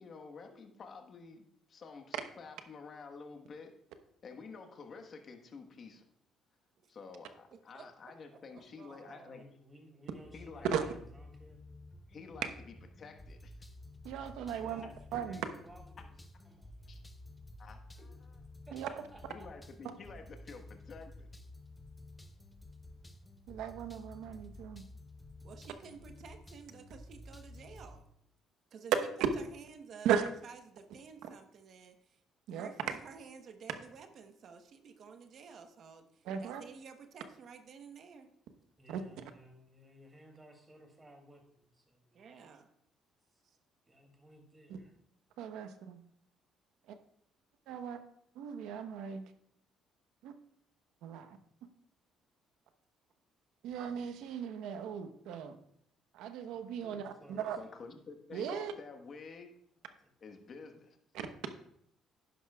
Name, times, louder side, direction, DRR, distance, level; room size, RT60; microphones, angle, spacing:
voice 1, 0.0-3.7 4.2-6.0 6.9-9.4 10.3-10.7 12.1-12.5 13.0-13.5 16.9-17.0 17.6-17.8 19.3-21.3 57.6-59.6 60.2-61.0, left 4 dB, 45° left, 4 dB, 1.3 m, -50 dB
voice 2, 7.5-9.4 25.4-28.0 28.7-28.9 29.4-30.1 30.4-32.2 32.5-38.3 42.1-42.7 43.4-43.6, right 6 dB, 55° right, 7 dB, 1.0 m, -53 dB
voice 3, 9.0-11.6 14.5-14.9 15.2-16.1 16.4-17.0 18.7-19.5 38.8-42.5 43.3-43.4 43.9-44.9 56.8-57.7 59.8-59.9 60.3-60.5, right 1 dB, 20° right, 2 dB, 2.8 m, -58 dB
sound 1, 10.2-28.0, left 1 dB, 10° left, 0.9 m, -52 dB
voice 4, 14.0-15.4 18.7-18.9 23.5-24.8 30.0-30.3 31.2-31.3 32.5-32.7 36.2-36.6 38.9-39.0 44.7-44.8 45.4-46.0 47.7-48.0 48.3-49.3 50.2-50.3 51.0-51.4 53.6-55.6 56.1-57.6 58.3-58.7, right 8 dB, 85° right, 8 dB, 0.9 m, -37 dB
11.0 x 10.5 x 2.4 m, 0.70 s
cardioid pair, 100°, 0 cm